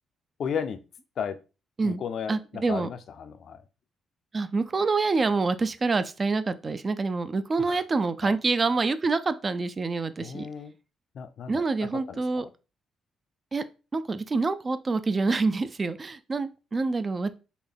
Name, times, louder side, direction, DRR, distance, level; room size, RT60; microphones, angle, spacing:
voice 1, 0.4-0.8 1.2-1.4 1.8-3.7 7.6-7.8 8.2-8.4 10.2-10.8 11.1-12.5, left 7 dB, 60° left, 0.4 m, -35 dB
voice 2, 2.3-2.9 4.3-10.5 11.5-12.4 13.5-17.3, right 3 dB, 30° right, 0.3 m, -27 dB
3.7 x 2.2 x 3.4 m
cardioid pair, 90°, 0 cm